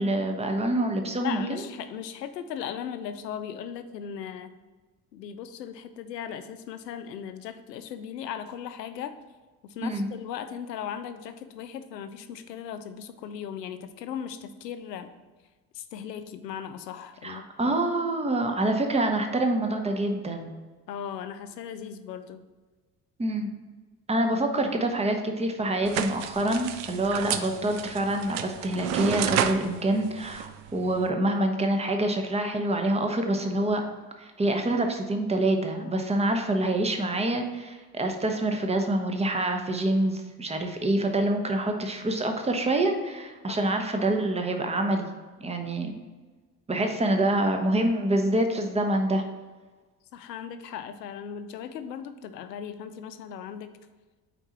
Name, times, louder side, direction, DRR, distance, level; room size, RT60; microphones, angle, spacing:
voice 1, 0.0-1.6 9.8-10.1 17.2-20.5 23.2-23.5 24.1-33.8 34.2-45.1 45.4-45.9 46.7-49.2, right 1 dB, 15° right, 4 dB, 0.8 m, -26 dB
voice 2, 1.2-4.5 5.1-9.2 9.6-15.1 15.7-17.7 20.9-22.4 43.5-43.7 50.1-53.8, left 8 dB, 80° left, 11 dB, 0.5 m, -37 dB
sound 1, 25.9-31.1, right 9 dB, 40° right, 0.4 m, -32 dB
4.5 x 4.1 x 5.6 m, 1.3 s
figure-of-eight pair, 55°, 49 cm